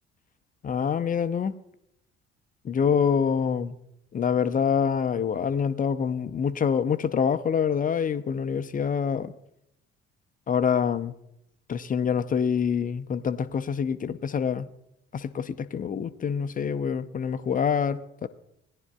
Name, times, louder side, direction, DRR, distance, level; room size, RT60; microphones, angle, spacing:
voice 1, 0.6-1.5 2.6-3.7 4.1-9.3 10.5-11.1 11.7-14.7 15.1-18.3, left 7 dB, 25° left, 0.6 m, -26 dB
19.0 x 10.5 x 2.3 m
figure-of-eight pair, 50°, 30 cm